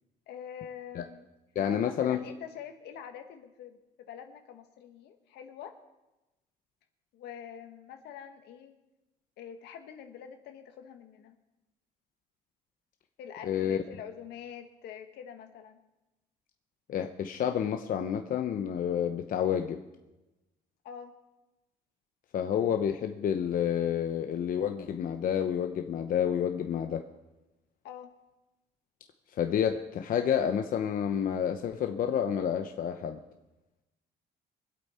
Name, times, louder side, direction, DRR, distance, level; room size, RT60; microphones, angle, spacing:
voice 1, 0.3-1.3 1.7-3.8 4.1-5.8 7.1-8.8 9.4-11.4 13.2-15.8 20.8-21.2 27.8-28.1, left 8 dB, 75° left, 6 dB, 1.6 m, -45 dB
voice 2, 1.5-2.2 13.4-13.8 16.9-19.8 22.3-27.1 29.4-33.2, left 9 dB, 55° left, 6 dB, 0.9 m, -29 dB
24.5 x 8.2 x 4.4 m, 1.0 s
cardioid pair, 110°, 17 cm